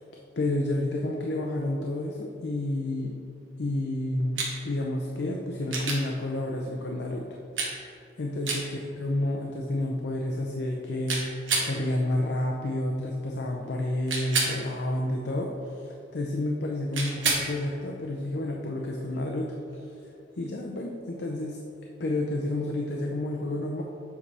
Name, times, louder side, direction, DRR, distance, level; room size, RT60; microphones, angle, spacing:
voice 1, 0.4-3.2 3.6-7.3 8.2-19.6 20.4-21.6 22.0-23.8, left 1 dB, 55° left, 0 dB, 0.5 m, -30 dB
sound 1, 4.4-4.5 5.7-6.0 7.6-7.7 8.4-8.6 11.1-11.7 14.1-14.6 16.9-17.5 19.7-19.8, right 3 dB, 80° right, 1.2 m, -27 dB
7.4 x 5.3 x 3.4 m, 2.8 s
head